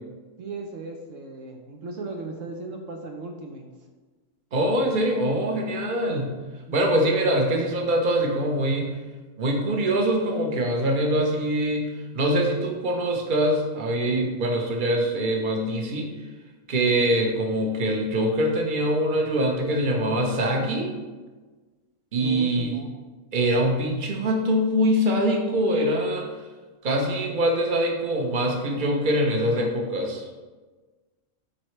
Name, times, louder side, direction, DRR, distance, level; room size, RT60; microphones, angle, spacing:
voice 1, 0.4-3.7 6.7-7.0 22.2-22.9, right 3 dB, 70° right, 2 dB, 1.2 m, -37 dB
voice 2, 4.5-6.4 6.7-9.0 9.4-11.9 12.1-16.1 16.7-20.9 22.1-22.8 23.3-26.2 26.8-30.5, right 1 dB, 40° right, 1 dB, 1.1 m, -23 dB
13.0 x 4.5 x 3.2 m, 1.3 s
omnidirectional pair, 1.4 m